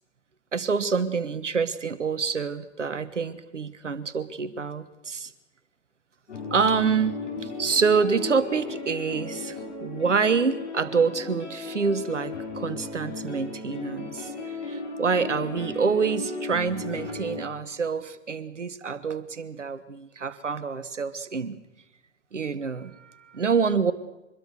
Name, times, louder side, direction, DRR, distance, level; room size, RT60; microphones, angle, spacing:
voice 1, 0.5-5.3 6.5-14.3 14.6-21.6 22.3-23.9, right 5 dB, 80° right, 15 dB, 1.6 m, -27 dB
sound 1, 6.3-17.4, left 3 dB, 75° left, 7.6 m, -36 dB
25.0 x 21.5 x 6.6 m, 1.0 s
figure-of-eight pair, 90°, 36 cm